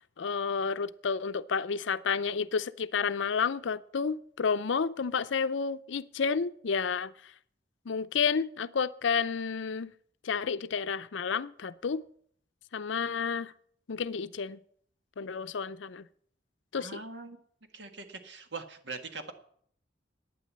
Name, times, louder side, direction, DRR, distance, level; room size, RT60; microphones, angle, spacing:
voice 1, 0.2-7.1 7.9-9.9 10.2-12.0 12.7-13.5 13.9-14.6 15.2-16.0 16.7-17.0, left 5 dB, 80° left, 0.5 m, -30 dB
voice 2, 16.7-17.4 17.7-19.3, right 4 dB, 70° right, 1.6 m, -42 dB
11.5 x 9.4 x 7.4 m
head